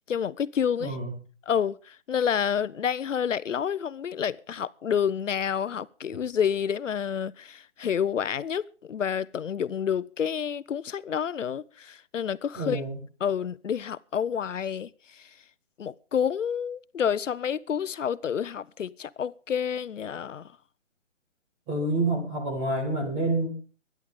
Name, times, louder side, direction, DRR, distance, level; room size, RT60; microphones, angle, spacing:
voice 1, 0.1-1.0 1.5-12.8 13.2-15.3 15.8-20.5, left 8 dB, 80° left, 0.8 m, -29 dB
voice 2, 0.8-1.1 12.5-13.0 21.7-23.5, right 2 dB, 5° right, 1.7 m, -28 dB
24.0 x 10.5 x 3.7 m
hypercardioid pair, 180°, 37 cm